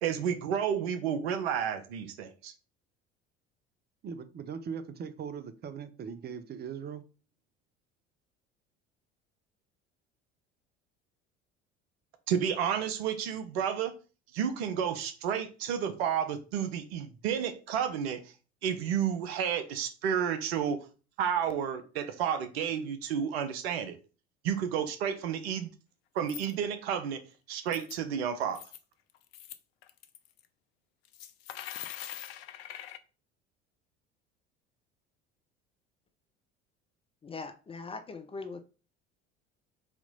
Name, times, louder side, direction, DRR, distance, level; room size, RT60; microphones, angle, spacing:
voice 1, 0.0-2.5 12.3-13.9 14.3-18.2 18.6-20.8 21.2-24.0 24.4-25.7 26.1-27.2 27.5-28.6, right 8 dB, 65° right, 0.8 m, -31 dB
voice 2, 4.0-7.0, right 7 dB, 30° right, 0.6 m, -40 dB
sound 1, 26.3-26.5 27.5-28.0 28.4-28.8 29.1-29.6 29.8-30.5 31.0-33.0, left 11 dB, 65° left, 0.5 m, -43 dB
voice 3, 37.2-38.6, left 4 dB, 15° left, 0.5 m, -41 dB
4.1 x 2.9 x 4.0 m
figure-of-eight pair, 65°, 33 cm